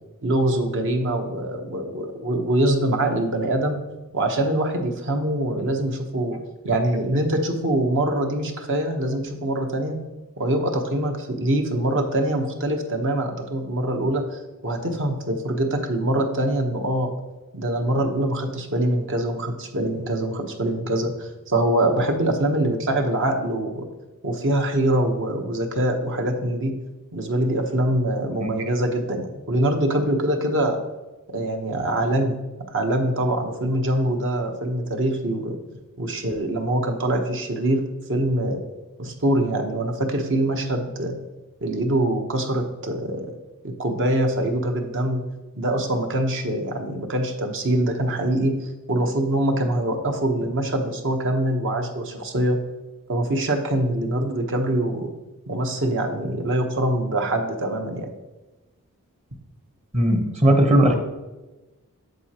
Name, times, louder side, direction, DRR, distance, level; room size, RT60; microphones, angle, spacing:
voice 1, 0.2-3.8 4.1-6.4 6.6-10.0 10.4-17.1 17.5-23.9 24.2-26.7 27.1-30.8 31.3-32.4 32.7-35.6 36.0-37.8 38.1-38.6 39.0-41.2 41.6-43.4 43.6-45.2 45.5-52.6 53.1-55.1 55.5-58.1, right 1 dB, 60° right, 4 dB, 1.0 m, -24 dB
voice 2, 59.9-61.0, right 1 dB, 30° right, 4 dB, 1.0 m, -17 dB
7.9 x 7.4 x 2.9 m, 1.1 s
head